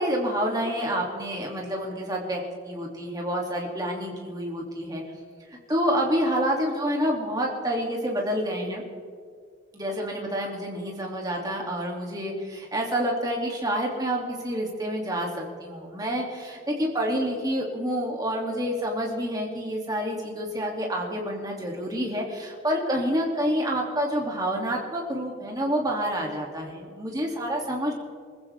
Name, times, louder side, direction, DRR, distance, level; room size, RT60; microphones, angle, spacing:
voice 1, 0.0-2.4 2.7-5.0 5.7-8.8 9.7-27.9, equal, 20° right, -1 dB, 2.8 m, -28 dB
24.5 x 15.0 x 3.6 m, 2.1 s
head